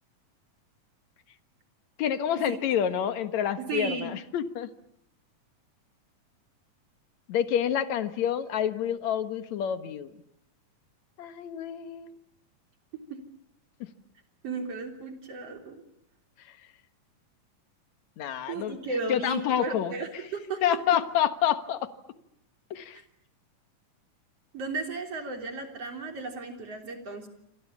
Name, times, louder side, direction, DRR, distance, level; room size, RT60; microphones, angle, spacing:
voice 1, 2.0-4.7 7.3-10.1 11.2-12.1 18.2-18.8 19.1-19.9 20.6-21.9 22.7-23.0, left 9 dB, 60° left, 10 dB, 2.4 m, -28 dB
voice 2, 3.6-4.1 13.1-13.2 14.4-15.8 18.5-20.6 24.5-27.3, right 3 dB, 45° right, 4 dB, 4.3 m, -35 dB
28.5 x 26.0 x 7.3 m, 0.74 s
omnidirectional pair, 3.9 m